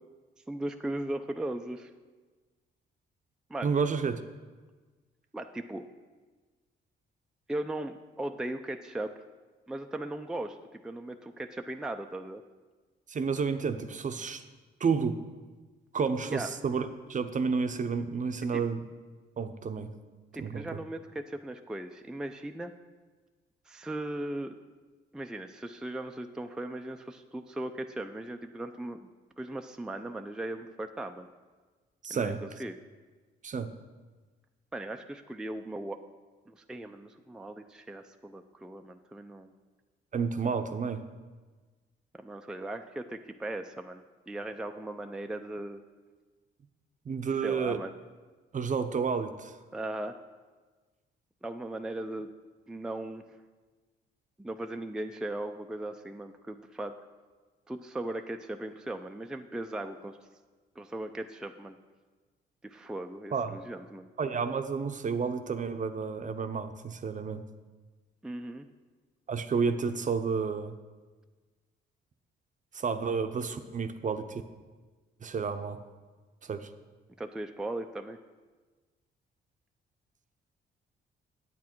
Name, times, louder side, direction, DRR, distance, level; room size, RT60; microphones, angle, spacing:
voice 1, 0.5-1.9 3.5-3.7 5.3-5.9 7.5-9.1 9.7-12.4 16.3-16.5 18.5-18.6 20.3-22.7 23.7-24.5 25.1-29.1 29.4-31.3 32.1-32.8 34.7-36.0 36.5-39.5 42.2-45.8 47.4-47.9 49.7-50.2 51.4-52.3 52.7-53.2 54.4-56.9 57.7-60.2 60.8-61.8 62.6-64.1 68.2-68.7 77.2-78.2, right 1 dB, 5° right, 5 dB, 0.4 m, -38 dB
voice 2, 3.6-4.2 13.1-14.4 14.8-15.1 15.9-18.8 19.4-19.9 20.4-20.8 32.0-32.4 33.4-33.7 40.1-41.0 47.1-47.8 48.5-49.5 63.3-63.6 64.2-67.4 69.3-70.7 72.7-74.4 75.2-75.8 76.4-76.7, right 5 dB, 40° right, 9 dB, 0.7 m, -30 dB
8.4 x 8.4 x 4.5 m, 1.3 s
cardioid pair, 75°, 20 cm